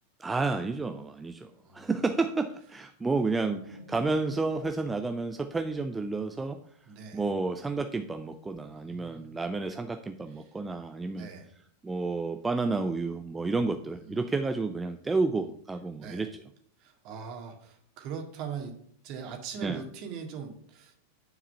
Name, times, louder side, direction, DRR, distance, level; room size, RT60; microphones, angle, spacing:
voice 1, 0.2-6.6 7.1-11.3 11.8-16.3 19.6-19.8, right 3 dB, 10° right, 7 dB, 0.6 m, -30 dB
sound 1, 3.2-6.0, right 2 dB, 70° right, 0.9 m, -51 dB
voice 2, 6.9-7.2 8.7-9.3 11.1-11.5 14.0-14.5 16.0-16.3 16.8-18.8 19.0-20.9, right 6 dB, 40° right, 3 dB, 1.9 m, -41 dB
9.9 x 4.8 x 5.7 m, 0.65 s
figure-of-eight pair, 90°, 0 cm